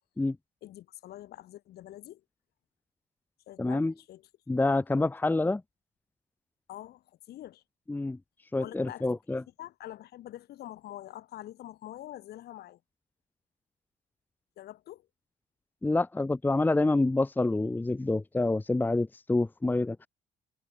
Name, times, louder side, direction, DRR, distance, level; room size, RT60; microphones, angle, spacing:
voice 1, 0.6-2.2 3.5-4.3 6.7-7.6 8.6-12.8 14.6-15.1, left 13 dB, 70° left, 6.3 m, -45 dB
voice 2, 3.6-3.9 4.5-5.6 7.9-8.2 8.5-9.4 15.8-20.1, left 2 dB, 10° left, 1.0 m, -27 dB
cardioid pair, 110°, 17 cm